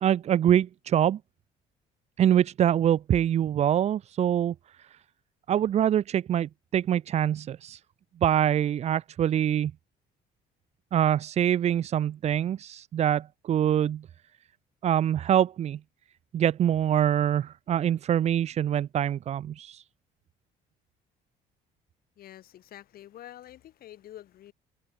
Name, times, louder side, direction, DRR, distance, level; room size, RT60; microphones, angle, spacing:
voice 1, 0.0-1.2 2.2-4.5 5.5-7.8 8.2-9.7 10.9-14.1 14.8-15.8 16.3-19.8, right 10 dB, 40° right, 0.4 m, -24 dB
voice 2, 22.2-24.5, left 12 dB, 60° left, 1.8 m, -47 dB
cardioid pair, 110°, 17 cm